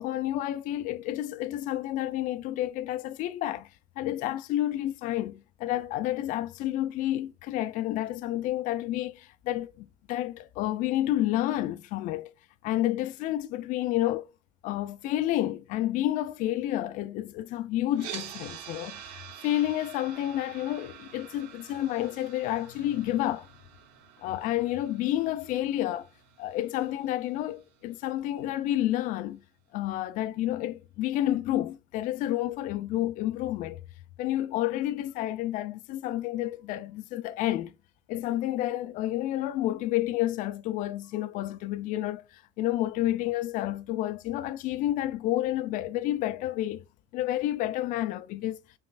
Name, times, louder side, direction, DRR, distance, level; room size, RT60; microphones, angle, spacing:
voice 1, 0.0-3.7 4.0-12.3 12.6-14.2 14.6-23.5 24.2-26.1 26.4-29.4 29.7-33.8 34.2-37.7 38.1-46.8 47.1-48.6, left 14 dB, 50° left, 0.5 m, -30 dB
sound 1, 17.9-28.0, right 10 dB, 75° right, 0.9 m, -47 dB
5.4 x 3.1 x 2.3 m
cardioid pair, 155°, 17 cm